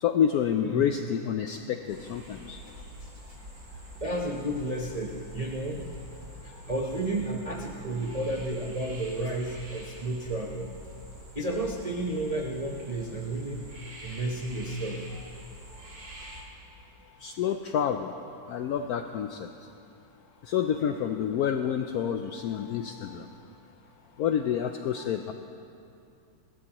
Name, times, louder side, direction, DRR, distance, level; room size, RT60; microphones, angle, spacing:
voice 1, 0.0-2.6 8.1-8.2 17.2-18.1 18.5-19.4 20.5-23.3 24.2-25.3, left 8 dB, 80° left, 6 dB, 0.8 m, -28 dB
sound 1, 1.9-16.4, right 1 dB, 80° right, 3.0 m, -46 dB
voice 2, 4.0-5.8 6.4-10.7 11.3-13.6 14.0-15.0, right 1 dB, 35° right, -2 dB, 0.6 m, -32 dB
28.5 x 12.5 x 3.0 m, 2.6 s
omnidirectional pair, 2.1 m